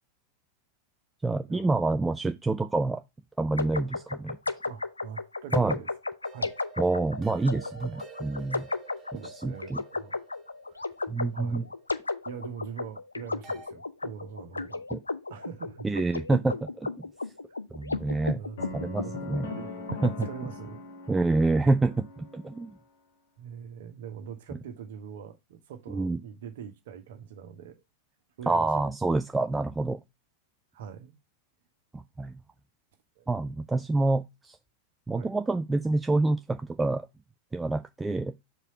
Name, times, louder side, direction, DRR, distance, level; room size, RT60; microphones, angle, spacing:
voice 1, 1.2-3.0 3.4-4.4 5.5-5.7 6.8-8.7 9.2-9.8 11.1-11.6 14.9-15.0 15.8-17.1 17.7-18.4 18.7-19.5 20.0-20.3 21.1-22.8 25.9-26.2 28.5-30.0 31.9-32.3 33.3-34.6 35.1-37.1 37.5-38.3, right 3 dB, 10° right, 0.4 m, -27 dB
sound 1, 3.6-20.3, left 3 dB, 80° left, 0.7 m, -34 dB
voice 2, 4.6-5.9 6.3-6.5 9.1-10.2 10.7-10.9 11.3-11.7 12.2-14.8 15.3-15.9 18.3-18.6 19.0-20.9 23.4-27.8 28.4-28.8 30.7-31.2 33.2-33.3 35.2-35.3, right 7 dB, 55° right, 1.5 m, -43 dB
sound 2, 6.2-12.3 13.4-13.7, right 7 dB, 25° right, 2.0 m, -51 dB
sound 3, 18.6-22.7, left 2 dB, 60° left, 1.7 m, -41 dB
4.9 x 4.4 x 5.8 m
figure-of-eight pair, 90°, 0 cm